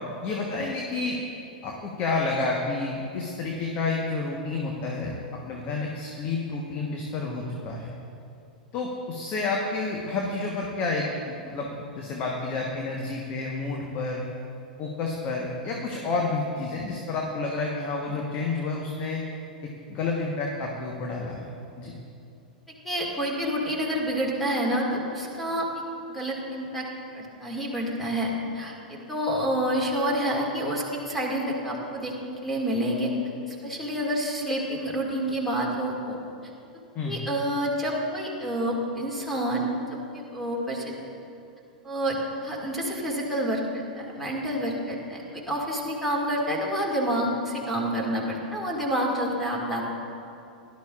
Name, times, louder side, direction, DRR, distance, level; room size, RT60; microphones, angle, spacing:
voice 1, 0.2-1.2 1.6-5.1 5.4-7.9 8.7-11.7 11.9-14.2 14.8-19.2 19.9-21.5 21.8-21.9 36.9-37.2, left 3 dB, 35° left, 0 dB, 1.2 m, -30 dB
voice 2, 22.7-25.7 26.1-26.9 27.1-33.1 33.4-36.2 37.0-40.9 41.8-42.2 42.4-50.0, equal, ahead, -3 dB, 2.2 m, -28 dB
17.0 x 11.5 x 2.5 m, 2.6 s
figure-of-eight pair, 95°, 5 cm